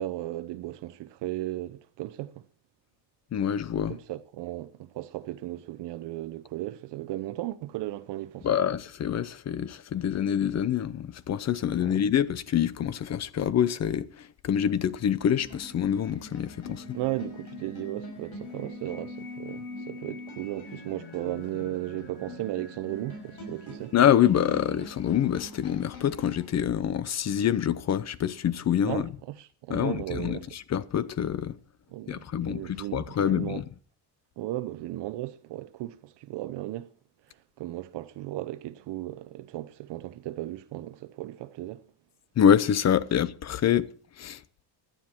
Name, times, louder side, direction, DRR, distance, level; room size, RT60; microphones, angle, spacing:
voice 1, 0.0-2.4 3.9-8.5 11.8-12.0 16.9-23.9 28.8-30.4 31.9-33.6 34.4-36.9 37.6-41.8, right 15 dB, 65° right, 0.8 m, -36 dB
voice 2, 3.3-4.0 8.4-16.8 23.9-29.1 29.7-31.6 32.1-33.6 42.4-43.9 44.2-44.4, left 9 dB, 35° left, 0.7 m, -26 dB
sound 1, 15.3-26.5, left 2 dB, 60° left, 6.1 m, -43 dB
17.0 x 11.5 x 4.4 m
cardioid pair, 150°, 44 cm